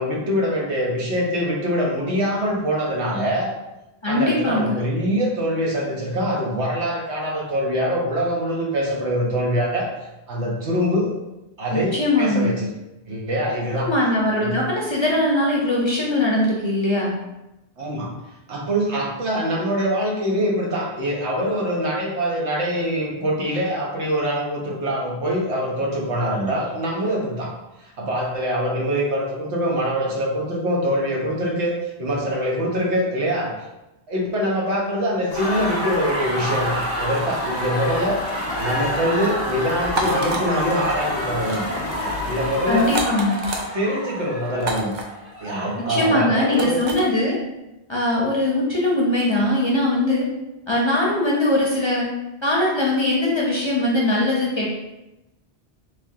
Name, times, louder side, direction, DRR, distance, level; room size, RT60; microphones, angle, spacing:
voice 1, 0.0-3.5 4.1-9.9 10.3-11.1 11.6-12.7 13.1-13.9 14.4-14.6 17.8-18.1 18.5-27.5 27.8-33.5 34.1-41.7 42.3-42.9 43.7-44.9 45.4-46.8, equal, 90° right, -2 dB, 1.2 m, -24 dB
voice 2, 4.0-4.8 11.7-12.5 13.8-17.1 42.7-43.4 45.9-47.4 47.9-50.2 50.7-52.1 52.4-54.7, left 1 dB, 35° left, -4 dB, 0.5 m, -21 dB
sound 1, 35.3-43.2, left 3 dB, 85° left, 0.9 m, -34 dB
sound 2, 35.3-46.1, equal, 25° right, 1.0 m, -29 dB
sound 3, 39.8-40.4 41.3-41.6 41.9-42.1 42.8-43.6 44.6-45.0 46.5-47.0, right 2 dB, 55° right, 0.6 m, -28 dB
3.4 x 3.3 x 2.7 m, 0.97 s
omnidirectional pair, 1.1 m